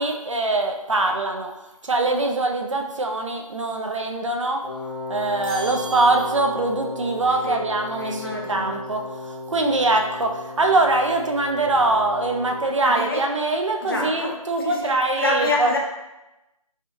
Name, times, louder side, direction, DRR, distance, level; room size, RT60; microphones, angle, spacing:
voice 1, 0.0-1.5 1.8-4.6 5.1-15.8, right 2 dB, 55° right, 3 dB, 0.5 m, -23 dB
Wind instrument woodwind instrument, 4.6-12.7, left 2 dB, 70° left, 1.0 m, -35 dB
sound 1, 5.4-6.8, right 3 dB, 35° right, 0.9 m, -38 dB
voice 2, 8.0-8.8 12.8-13.2 13.8-15.8, left 2 dB, 40° left, -1 dB, 0.6 m, -27 dB
3.4 x 3.3 x 2.9 m, 1.0 s
figure-of-eight pair, 170°, 19 cm